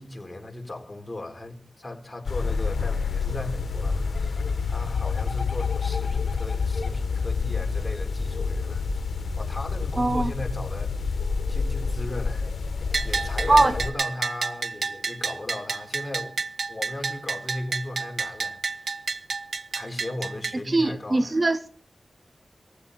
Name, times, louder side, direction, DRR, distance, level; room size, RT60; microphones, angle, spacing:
voice 1, 0.0-8.8 9.3-12.5 13.0-16.4 16.7-18.9 19.7-21.4, left 1 dB, 30° left, 4.0 m, -37 dB
sound 1, 2.2-13.9, left 4 dB, 90° left, 1.3 m, -28 dB
voice 2, 10.0-10.3 13.5-13.8 20.7-21.7, right 2 dB, 40° right, 1.2 m, -21 dB
Bell, 12.9-20.6, right 4 dB, 80° right, 0.9 m, -30 dB
19.0 x 15.0 x 4.3 m
wide cardioid pair, 75°, 0 cm